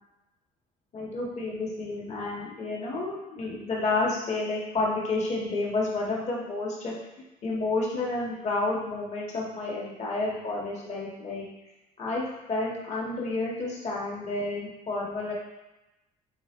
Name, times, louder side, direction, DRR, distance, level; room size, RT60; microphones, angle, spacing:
voice 1, 0.9-6.9 7.4-11.4 12.0-15.3, left 2 dB, 40° left, -4 dB, 1.7 m, -30 dB
8.7 x 4.1 x 3.1 m, 1.0 s
cardioid pair, 110°, 17 cm